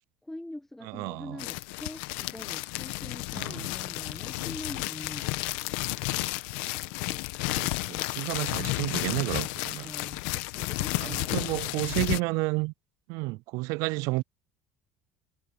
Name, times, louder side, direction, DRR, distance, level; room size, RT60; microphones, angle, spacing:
voice 1, 0.2-5.6 9.8-12.0, left 1 dB, 5° left, 1.6 m, -44 dB
voice 2, 0.8-1.4 3.3-3.7 7.0-7.2 7.5-9.9 11.0-12.7 13.1-14.2, right 25 dB, 75° right, 0.4 m, -31 dB
sound 1, 1.4-12.2, left 21 dB, 80° left, 1.2 m, -32 dB
supercardioid pair, 95°, 6 cm